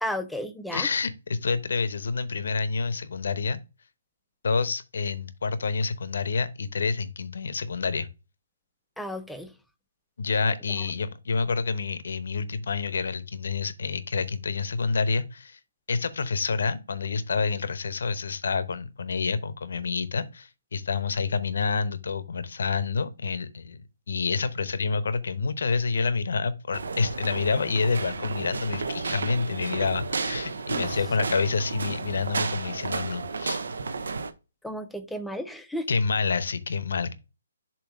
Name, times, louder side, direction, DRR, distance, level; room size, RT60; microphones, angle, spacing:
voice 1, 0.0-0.9 9.0-9.5 30.7-30.9 34.6-35.9, equal, ahead, 0.4 m, -33 dB
voice 2, 0.7-3.6 4.4-8.1 10.2-15.6 15.9-23.8 24.1-33.6 35.9-37.1, left 4 dB, 70° left, 0.8 m, -28 dB
sound 1, 26.7-34.3, right 4 dB, 85° right, 0.8 m, -32 dB
7.2 x 2.8 x 5.2 m
hypercardioid pair, 165°, 0 cm